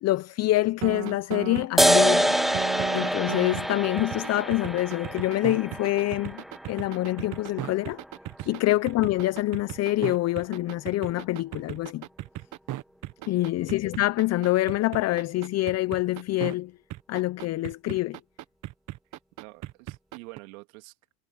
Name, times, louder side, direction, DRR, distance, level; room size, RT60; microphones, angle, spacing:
voice 1, 0.0-2.4 2.9-8.0 8.5-12.1 13.3-16.7 17.1-18.2, left 16 dB, 40° left, 0.7 m, -26 dB
sound 1, 0.8-16.5 16.9-20.4, right 15 dB, 45° right, 1.4 m, -36 dB
sound 2, 1.8-8.7, equal, ahead, 0.4 m, -27 dB
voice 2, 13.2-13.5 19.4-20.9, right 24 dB, 80° right, 2.9 m, -48 dB
supercardioid pair, 115°, 41 cm